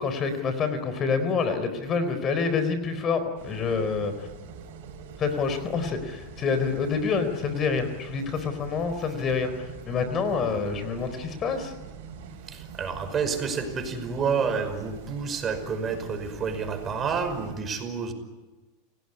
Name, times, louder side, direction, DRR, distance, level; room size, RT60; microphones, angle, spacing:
voice 1, 0.0-4.3 5.2-11.7, left 5 dB, 35° left, 10 dB, 4.1 m, -27 dB
sound 1, 3.4-17.5, right 7 dB, 70° right, 5.1 m, -44 dB
voice 2, 12.5-18.1, right 5 dB, 30° right, 8 dB, 5.6 m, -29 dB
29.5 x 18.0 x 10.0 m, 1.2 s
hypercardioid pair, 110°, 0 cm